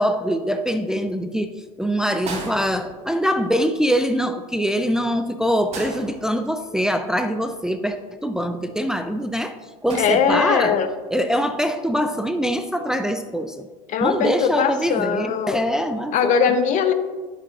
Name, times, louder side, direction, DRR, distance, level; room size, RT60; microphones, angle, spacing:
voice 1, 0.0-8.0 8.2-9.5 9.8-10.8 11.1-13.7 14.0-16.4, equal, 5° right, 7 dB, 0.4 m, -23 dB
sound 1, 2.2-3.5 5.7-6.9 9.9-10.8 12.1-12.3, right 3 dB, 40° right, 1.8 m, -36 dB
voice 2, 9.9-10.9 13.9-15.6 16.1-16.9, left 7 dB, 50° left, 10 dB, 0.7 m, -20 dB
9.7 x 7.3 x 2.4 m, 1.4 s
hypercardioid pair, 80°, 17 cm